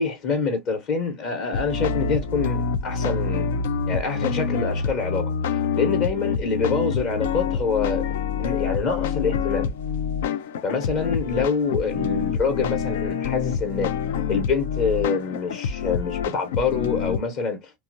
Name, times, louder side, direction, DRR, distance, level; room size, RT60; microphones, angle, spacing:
voice 1, 0.0-3.5 3.9-8.0 8.4-9.8 10.6-13.9 14.3-17.7, left 5 dB, 45° left, 1.0 m, -26 dB
sound 1, 1.5-17.2, left 6 dB, 65° left, 0.4 m, -26 dB
2.8 x 2.3 x 2.6 m
figure-of-eight pair, 75°, 0 cm